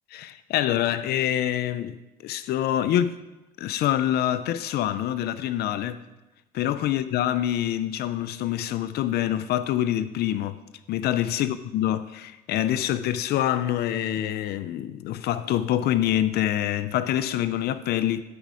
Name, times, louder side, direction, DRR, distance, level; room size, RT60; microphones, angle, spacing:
voice 1, 0.1-3.2 3.6-6.0 6.5-10.6 10.9-18.2, left 12 dB, 70° left, 0.5 m, -26 dB
12.5 x 5.2 x 4.9 m
cardioid pair, 110°, 17 cm